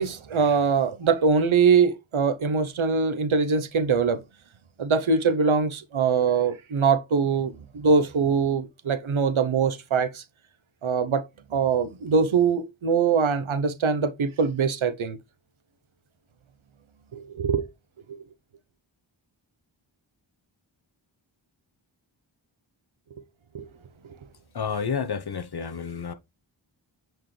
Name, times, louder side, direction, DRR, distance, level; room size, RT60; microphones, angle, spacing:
voice 1, 0.0-4.2 4.8-10.2 10.8-11.2 11.5-15.2 17.1-17.7 18.1-18.2 23.5-23.7, right 5 dB, 90° right, 0.9 m, -23 dB
voice 2, 24.5-26.1, left 6 dB, 55° left, 0.9 m, -30 dB
7.6 x 4.5 x 3.2 m
wide cardioid pair, 70°, 47 cm